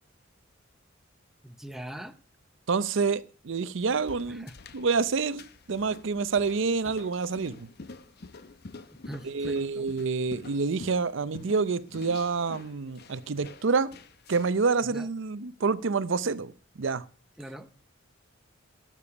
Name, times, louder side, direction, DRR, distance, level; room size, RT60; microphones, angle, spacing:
voice 1, 1.4-2.2 4.3-4.6 9.1-9.9 14.8-15.1 17.4-17.7, right 1 dB, ahead, 0.6 m, -41 dB
voice 2, 2.7-4.5 4.7-7.7 9.2-13.9 14.3-16.5 16.8-17.0, right 4 dB, 65° right, 0.6 m, -28 dB
sound 1, 3.8-14.7, left 3 dB, 50° left, 0.8 m, -48 dB
12.0 x 6.9 x 6.8 m
head